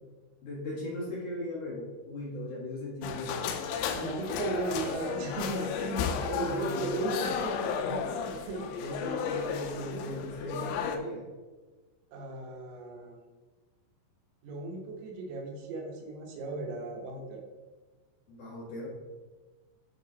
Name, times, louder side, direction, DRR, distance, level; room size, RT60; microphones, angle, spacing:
voice 1, 0.4-3.4 6.4-7.0 7.7-8.1 8.8-11.2 18.3-18.9, left 1 dB, 55° left, -7 dB, 2.7 m, -37 dB
sound 1, 3.0-11.0, left 7 dB, 80° left, 2.8 m, -34 dB
voice 2, 4.0-7.7 8.1-9.0 12.1-13.2 14.4-17.4, right 2 dB, 85° right, 1 dB, 3.5 m, -36 dB
11.5 x 3.9 x 4.0 m, 1.3 s
omnidirectional pair, 5.2 m